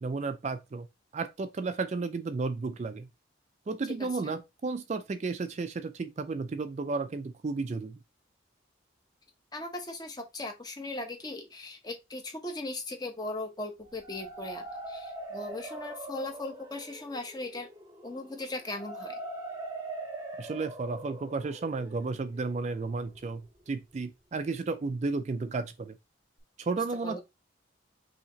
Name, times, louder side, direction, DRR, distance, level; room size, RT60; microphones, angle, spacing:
voice 1, 0.0-0.9 1.1-3.1 3.7-8.0 20.4-26.0 26.6-27.2, right 3 dB, 35° right, 0.3 m, -33 dB
voice 2, 4.0-4.3 9.5-17.7 18.0-19.2 26.7-27.2, left 2 dB, 20° left, 0.8 m, -38 dB
sound 1, 13.8-23.7, right 2 dB, 15° right, 0.8 m, -43 dB
5.6 x 2.8 x 2.8 m
head